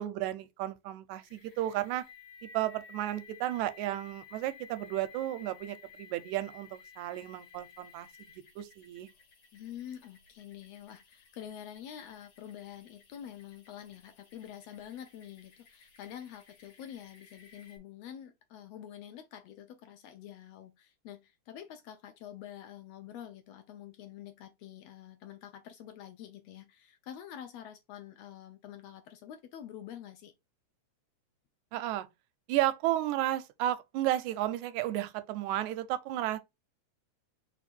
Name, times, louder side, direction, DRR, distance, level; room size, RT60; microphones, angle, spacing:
voice 1, 0.0-2.1 2.5-9.1 31.7-32.1 32.5-36.4, right 14 dB, 85° right, 1.9 m, -33 dB
sound 1, 1.2-17.8, left 5 dB, 60° left, 1.5 m, -56 dB
voice 2, 9.5-30.3, left 10 dB, 80° left, 1.6 m, -47 dB
4.5 x 2.6 x 4.2 m
omnidirectional pair, 3.3 m